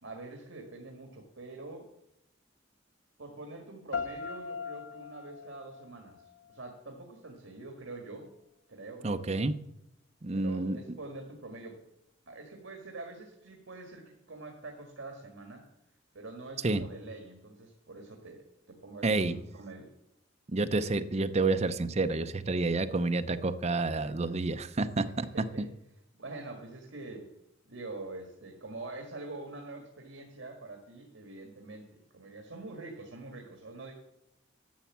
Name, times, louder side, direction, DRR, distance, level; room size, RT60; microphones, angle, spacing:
voice 1, 0.0-1.8 3.2-8.3 8.7-9.3 10.3-11.8 12.3-15.7 16.1-19.9 24.0-24.5 25.0-25.7 26.2-27.3 27.7-33.9, right 2 dB, 75° right, 2 dB, 1.7 m, -45 dB
sound 1, 3.9-6.9, left 5 dB, 80° left, 0.7 m, -40 dB
voice 2, 9.0-9.6 10.2-10.8 16.6-16.8 19.0-19.3 20.5-25.1 25.6-25.7, right 3 dB, 35° right, 10 dB, 0.6 m, -29 dB
11.5 x 7.0 x 7.3 m, 0.83 s
head